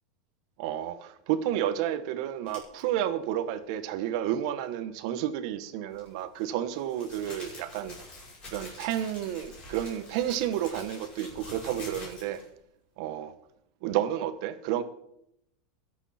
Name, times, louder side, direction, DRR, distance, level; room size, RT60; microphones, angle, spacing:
voice 1, 0.6-8.0 8.5-12.4 13.0-13.3 13.8-14.8, right 11 dB, 55° right, 1.2 m, -31 dB
sound 1, 2.5-2.8 5.9-12.5, left 2 dB, 25° left, 7.3 m, -46 dB
23.5 x 8.1 x 4.3 m
supercardioid pair, 155°, 4 cm